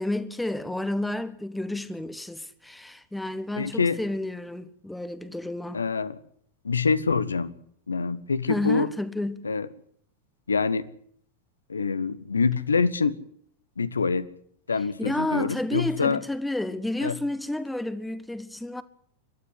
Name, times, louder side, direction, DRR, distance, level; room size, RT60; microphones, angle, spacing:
voice 1, 0.0-5.8 8.5-9.4 15.0-18.8, left 1 dB, 5° left, 1.4 m, -31 dB
voice 2, 3.6-4.0 5.7-6.2 6.6-7.5 7.9-8.9 9.4-9.7 10.5-10.8 11.7-13.2 13.8-14.3 14.7-16.2 17.0-17.1, left 5 dB, 75° left, 1.1 m, -25 dB
23.5 x 12.5 x 10.0 m
figure-of-eight pair, 90°, 0 cm